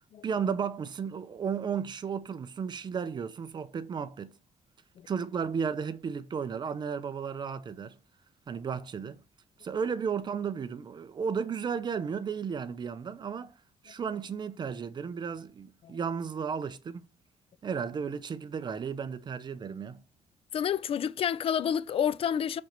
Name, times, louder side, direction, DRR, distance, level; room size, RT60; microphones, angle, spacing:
voice 1, 0.2-4.3 5.1-8.0 8.5-9.2 9.6-13.5 13.8-17.0 17.6-20.0, right 6 dB, 35° right, 0.8 m, -34 dB
voice 2, 20.5-22.6, left 8 dB, 50° left, 0.4 m, -29 dB
6.5 x 5.4 x 6.0 m
cardioid pair, 145°, 12 cm